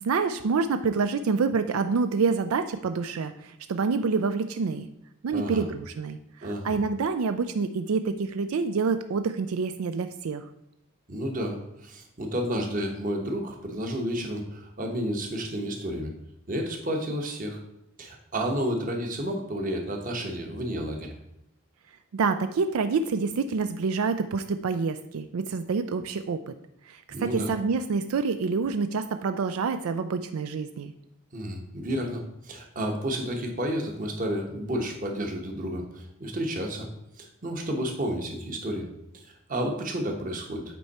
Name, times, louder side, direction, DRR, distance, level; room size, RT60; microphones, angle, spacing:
voice 1, 0.0-4.9 5.2-10.4 22.1-26.5 26.9-30.9, right 4 dB, 90° right, 9 dB, 0.4 m, -27 dB
voice 2, 5.3-5.6 6.4-6.7 11.1-16.1 16.5-17.6 18.0-21.1 27.1-27.5 31.3-36.9 37.2-38.8 39.1-40.6, equal, 40° right, 2 dB, 1.2 m, -31 dB
8.2 x 4.6 x 4.2 m, 0.81 s
head